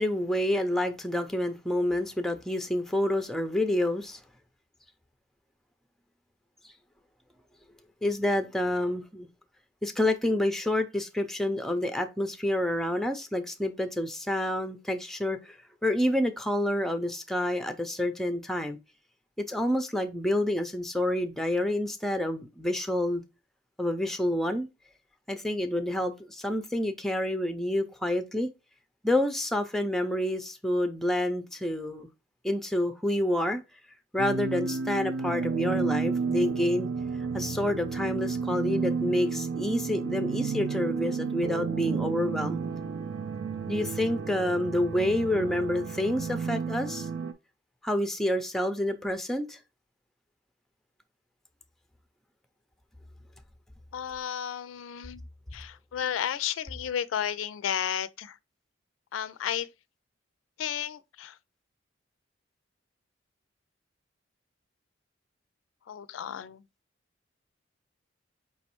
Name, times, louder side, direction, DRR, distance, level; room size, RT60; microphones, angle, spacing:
voice 1, 0.0-4.2 8.0-9.3 9.8-15.6 15.8-18.8 19.4-23.2 23.8-24.7 25.3-28.5 29.0-32.1 32.4-33.6 34.1-36.9 37.3-42.6 43.7-47.1 47.8-49.6, left 1 dB, ahead, 0.4 m, -28 dB
sound 1, 34.2-47.3, right 5 dB, 70° right, 0.4 m, -32 dB
voice 2, 53.9-55.2 55.5-58.4 59.1-59.7 60.6-61.4 65.9-66.6, left 9 dB, 90° left, 0.3 m, -33 dB
4.7 x 3.1 x 2.9 m
head